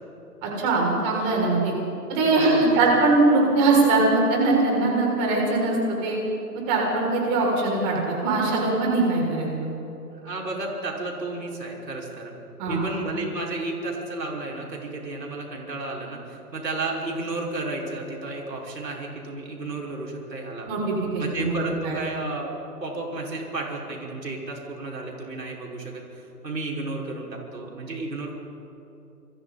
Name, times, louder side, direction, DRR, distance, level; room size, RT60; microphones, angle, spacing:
voice 1, 0.4-1.7 2.1-6.2 6.7-9.7 12.6-12.8 20.7-22.0, right 3 dB, 25° right, -2 dB, 6.9 m, -22 dB
voice 2, 2.3-2.8 10.1-12.3 12.7-20.7 21.2-22.5 22.8-28.3, right 2 dB, 90° right, -2 dB, 6.0 m, -32 dB
29.0 x 22.5 x 4.4 m, 3.0 s
hypercardioid pair, 150°, 48 cm